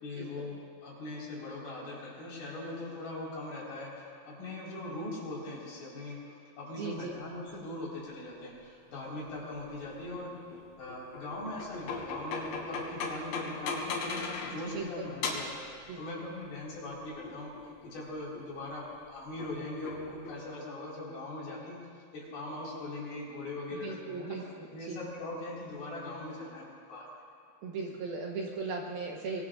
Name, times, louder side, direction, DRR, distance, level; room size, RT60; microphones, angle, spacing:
voice 1, 0.0-10.4 10.8-15.7 16.0-17.5 17.8-24.4 24.7-27.1, left 2 dB, 55° left, -6 dB, 6.2 m, -40 dB
voice 2, 6.7-7.1 14.6-14.9 15.9-16.0 23.7-24.4 24.9-25.0 27.6-29.4, right 4 dB, 70° right, -1 dB, 2.7 m, -37 dB
sound 1, 9.6-14.7 15.1-15.6 16.9-18.0 18.3-18.6 19.4-20.4, left 4 dB, 80° left, 4.2 m, -38 dB
25.0 x 22.0 x 2.6 m, 2.2 s
omnidirectional pair, 5.2 m